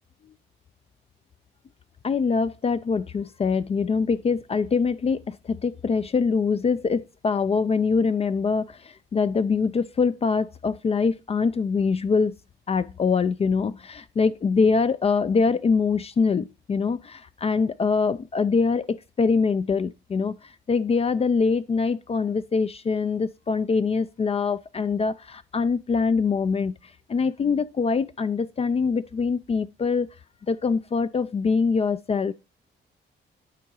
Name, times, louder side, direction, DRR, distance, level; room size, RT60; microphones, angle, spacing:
voice 1, 2.0-12.4 12.7-20.4 20.7-26.8 27.1-30.1 30.5-32.3, left 5 dB, 30° left, 0.4 m, -24 dB
9.0 x 3.7 x 4.6 m
cardioid pair, 90°, 20 cm